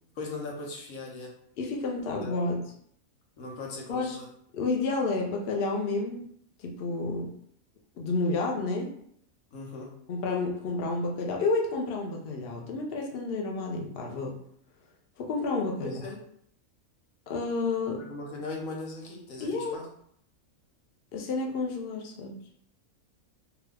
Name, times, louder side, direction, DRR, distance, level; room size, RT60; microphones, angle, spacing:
voice 1, 0.1-1.3 2.1-2.3 3.4-4.3 9.5-9.9 15.8-16.2 17.9-19.8, left 2 dB, 80° left, -1 dB, 1.2 m, -39 dB
voice 2, 1.6-2.6 3.9-4.2 4.5-6.3 6.6-7.3 8.0-8.9 10.1-14.3 15.2-16.0 17.3-18.0 19.4-19.8 21.1-22.3, left 3 dB, 60° left, 0 dB, 0.7 m, -30 dB
2.9 x 2.4 x 3.2 m, 0.67 s
omnidirectional pair, 1.4 m